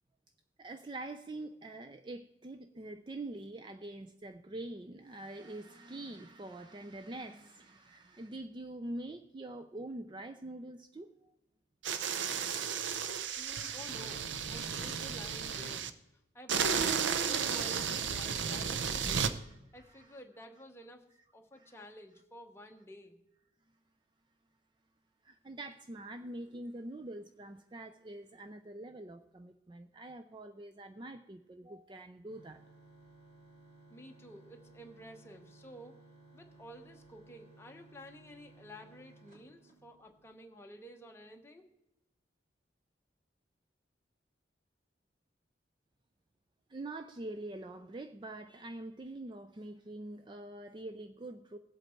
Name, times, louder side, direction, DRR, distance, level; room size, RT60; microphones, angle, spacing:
voice 1, 0.6-11.3 18.3-18.4 19.3-19.4 19.7-20.2 21.6-21.8 25.2-32.6 46.7-51.6, right 2 dB, 25° right, 8 dB, 0.4 m, -45 dB
sound 1, 11.8-15.9 16.5-19.3, right 6 dB, 80° right, 0.6 m, -33 dB
voice 2, 13.4-15.9 16.3-19.4 19.7-21.0 21.3-23.2 33.9-36.0 36.3-41.7, equal, 15° left, 3 dB, 1.1 m, -52 dB
sound 2, 32.3-40.3, right 2 dB, 50° right, 5.5 m, -59 dB
17.5 x 8.0 x 4.5 m, 0.89 s
head